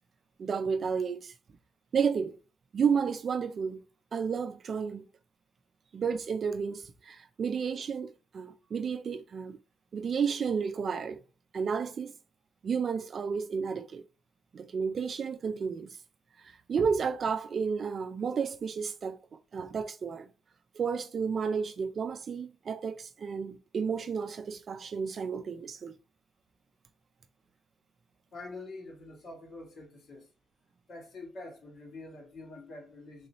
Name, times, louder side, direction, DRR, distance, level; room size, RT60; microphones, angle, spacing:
voice 1, 0.4-1.3 1.9-2.4 2.7-3.9 4.1-5.1 5.9-9.6 9.9-11.2 11.5-12.1 12.6-14.0 14.5-16.0 16.4-20.3 20.7-26.0, right 6 dB, 45° right, 0.4 m, -32 dB
voice 2, 28.3-30.3 30.9-33.3, left 2 dB, 60° left, 1.6 m, -45 dB
3.8 x 2.8 x 2.9 m
cardioid pair, 135°, 0 cm